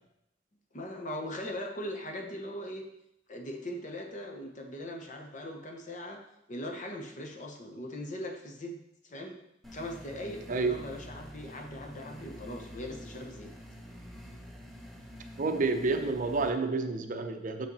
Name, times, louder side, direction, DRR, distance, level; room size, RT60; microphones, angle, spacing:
voice 1, 0.7-2.8 3.3-6.2 6.5-8.8 9.0-9.4 9.7-13.5, left 1 dB, 40° left, 3 dB, 1.0 m, -40 dB
sound 1, 9.6-16.5, equal, ahead, 0.9 m, -47 dB
voice 2, 15.4-17.7, right 3 dB, 45° right, 7 dB, 0.6 m, -29 dB
6.0 x 5.8 x 4.0 m, 0.80 s
head